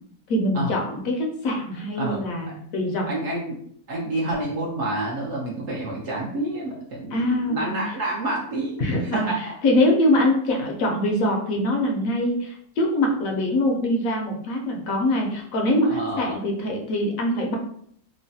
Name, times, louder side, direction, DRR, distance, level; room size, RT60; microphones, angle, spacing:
voice 1, 0.3-3.1 7.1-7.8 8.8-17.6, left 1 dB, 70° left, 1 dB, 0.9 m, -23 dB
voice 2, 3.1-3.6 3.9-8.8 9.1-9.4 15.9-16.4, right 1 dB, 60° right, -3 dB, 0.8 m, -28 dB
3.1 x 2.0 x 2.6 m, 0.65 s
omnidirectional pair, 1.6 m